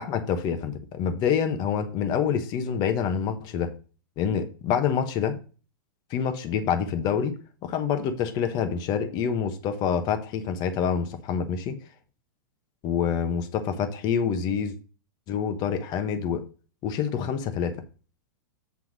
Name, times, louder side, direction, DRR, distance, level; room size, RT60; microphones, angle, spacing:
voice 1, 0.0-3.7 4.2-5.4 6.1-11.8 12.8-14.8 15.3-16.4 16.8-17.8, left 7 dB, 40° left, 1.1 m, -27 dB
8.3 x 3.5 x 6.1 m
hypercardioid pair, 125°, 11 cm